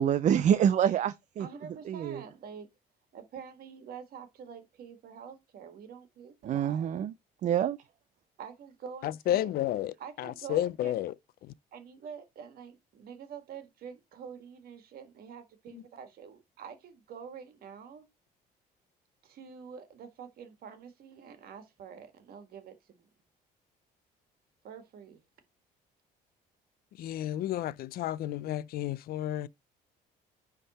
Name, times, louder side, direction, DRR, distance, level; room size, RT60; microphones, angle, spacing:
voice 1, 0.0-1.5 1.9-2.2 6.4-7.1 7.4-7.8, right 9 dB, 45° right, 0.5 m, -26 dB
voice 2, 1.4-2.7 3.1-6.9 8.4-9.5 10.0-10.9 11.7-18.0 19.2-23.1 24.6-25.2, right 7 dB, 60° right, 1.7 m, -46 dB
voice 3, 9.0-11.1 11.4-11.5 15.7-15.8 27.0-29.5, left 12 dB, 65° left, 0.5 m, -32 dB
9.8 x 3.6 x 4.2 m
cardioid pair, 110°, 17 cm